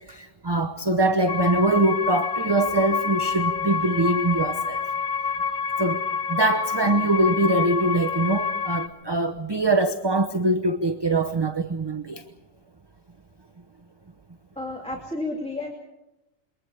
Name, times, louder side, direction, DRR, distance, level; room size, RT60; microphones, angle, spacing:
voice 1, 0.1-4.8 5.8-6.0 6.3-12.2, right 2 dB, 20° right, 5 dB, 0.8 m, -23 dB
sound 1, 1.3-8.9, left 5 dB, 75° left, 1.6 m, -28 dB
voice 2, 14.6-15.7, left 2 dB, 5° left, 0 dB, 2.7 m, -31 dB
27.5 x 23.0 x 4.9 m, 0.94 s
omnidirectional pair, 1.4 m